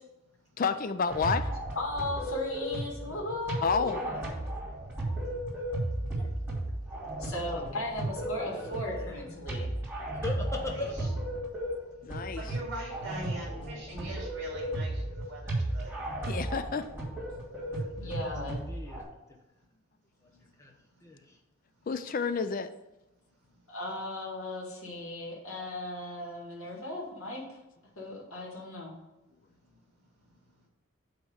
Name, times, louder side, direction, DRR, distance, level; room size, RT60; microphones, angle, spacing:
voice 1, 0.6-1.5 3.6-4.0 12.0-12.4 16.3-16.9 21.9-22.7, left 5 dB, 40° left, 11 dB, 0.4 m, -29 dB
sound 1, 1.1-19.0, right 1 dB, 10° right, 2.4 m, -35 dB
voice 2, 1.8-4.2 7.2-9.7 18.0-18.6 23.7-27.4 28.0-28.9, left 1 dB, 85° left, -3 dB, 2.1 m, -36 dB
voice 3, 7.3-7.9 8.5-9.4 10.1-11.1 17.7-19.1 20.2-20.7 21.0-21.4, left 3 dB, 15° left, 1 dB, 0.9 m, -41 dB
voice 4, 10.6-11.1 12.4-15.9, right 1 dB, 55° right, -2 dB, 2.6 m, -42 dB
8.8 x 3.0 x 6.3 m, 1.0 s
head